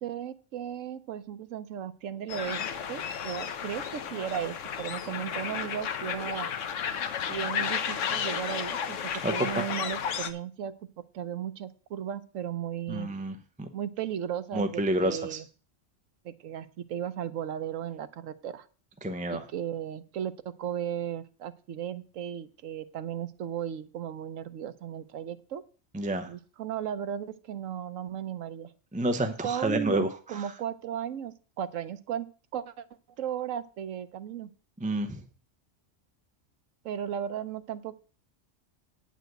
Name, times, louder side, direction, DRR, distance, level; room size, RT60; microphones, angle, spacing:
voice 1, 0.0-6.5 7.3-13.1 13.7-15.5 16.2-18.7 19.3-25.6 26.3-28.7 29.2-32.8 33.2-34.5 36.8-38.0, right 9 dB, 90° right, 12 dB, 1.1 m, -36 dB
sound 1, 2.3-10.3, left 8 dB, 75° left, 1.1 m, -33 dB
voice 2, 12.9-13.7 14.5-15.4 19.0-19.4 25.9-26.3 28.9-30.4 34.8-35.2, right 1 dB, 10° right, 6 dB, 0.5 m, -29 dB
9.2 x 4.9 x 7.8 m, 0.38 s
omnidirectional pair, 1.3 m